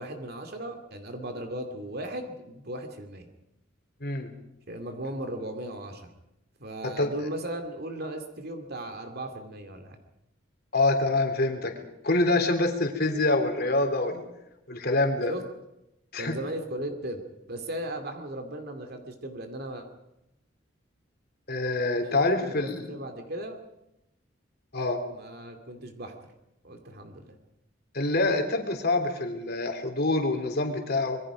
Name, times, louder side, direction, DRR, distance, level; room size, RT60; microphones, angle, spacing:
voice 1, 0.0-3.3 4.7-6.1 6.6-10.0 15.3-15.4 16.2-17.2 17.5-19.9 22.0-23.6 25.1-26.2 26.6-27.4, right 1 dB, 55° right, 5 dB, 2.6 m, -37 dB
voice 2, 4.0-4.3 6.8-7.1 10.7-11.7 12.0-14.2 14.7-15.3 16.1-16.4 21.5-22.9 24.7-25.0 27.9-31.2, left 2 dB, 55° left, 5 dB, 3.4 m, -26 dB
26.0 x 22.0 x 5.1 m, 0.88 s
head